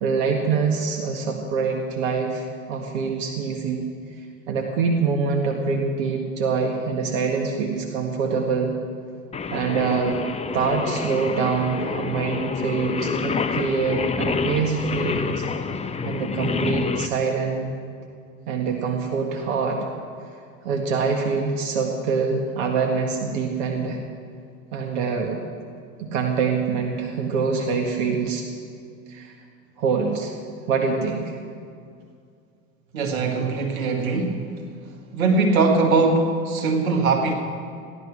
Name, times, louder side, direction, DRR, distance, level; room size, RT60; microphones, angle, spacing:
voice 1, 0.0-3.9 4.5-8.7 9.5-10.2 10.5-15.5 16.0-17.7 18.5-19.9 20.7-24.0 24.7-25.4 26.0-28.4 29.1-29.3 29.8-30.3 30.7-31.4, right 5 dB, 65° right, 2 dB, 1.8 m, -25 dB
Singing, 9.3-17.1, left 5 dB, 15° left, 0.8 m, -28 dB
voice 2, 32.9-34.5 35.1-37.3, right 3 dB, 80° right, 3 dB, 2.1 m, -21 dB
16.5 x 11.5 x 6.2 m, 2.3 s
hypercardioid pair, 85°, 41 cm